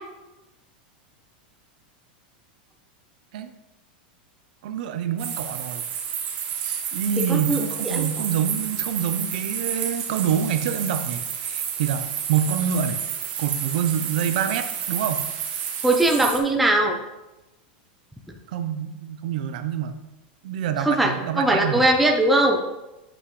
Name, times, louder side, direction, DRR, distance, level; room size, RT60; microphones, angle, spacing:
voice 1, 4.6-5.8 6.6-13.0 13.4-15.2 18.5-19.9 20.4-21.8, right 8 dB, 60° right, 9 dB, 0.6 m, -26 dB
sound 1, 5.2-16.4, right 8 dB, 30° right, 0.9 m, -30 dB
voice 2, 7.3-8.1 15.8-17.0 20.9-22.6, right 1 dB, ahead, 1 dB, 0.6 m, -20 dB
7.7 x 6.3 x 3.2 m, 1.0 s
supercardioid pair, 170°, 5 cm